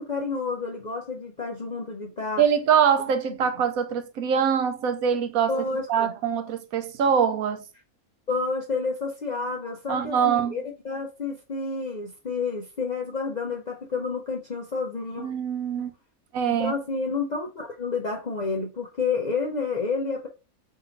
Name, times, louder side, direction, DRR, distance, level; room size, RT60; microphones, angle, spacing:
voice 1, 0.0-2.4 5.5-6.1 8.3-15.3 16.5-20.3, left 4 dB, 45° left, 0.5 m, -30 dB
voice 2, 2.4-5.6 5.9-7.6 9.9-10.6 15.2-15.9 16.3-16.7, right 7 dB, 75° right, 1.1 m, -23 dB
3.8 x 2.7 x 3.9 m
omnidirectional pair, 1.6 m